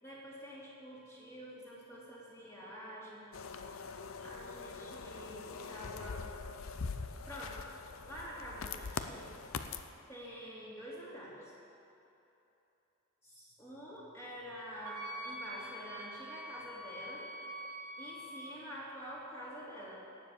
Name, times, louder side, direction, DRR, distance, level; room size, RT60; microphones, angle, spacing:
voice 1, 0.0-3.3 4.2-6.3 7.3-7.6 8.0-9.3 10.1-11.5 13.2-17.2 18.0-20.0, equal, 15° left, -7 dB, 3.2 m, -47 dB
sound 1, 3.3-9.8, left 5 dB, 70° left, 0.6 m, -43 dB
Wind instrument woodwind instrument, 14.8-18.5, right 1 dB, 65° right, 1.4 m, -45 dB
17.5 x 7.6 x 6.8 m, 3.0 s
head